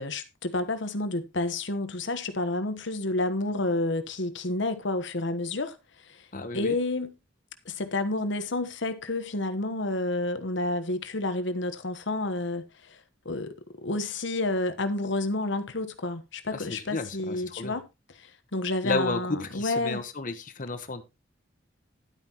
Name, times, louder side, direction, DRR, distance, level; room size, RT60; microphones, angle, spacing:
voice 1, 0.0-6.3 6.5-7.2 7.6-13.5 13.8-17.9 18.2-20.0, left 2 dB, 65° left, 1.2 m, -30 dB
voice 2, 6.3-6.7 16.5-17.7 18.8-21.0, left 2 dB, 45° left, 1.1 m, -32 dB
11.5 x 9.3 x 3.0 m
head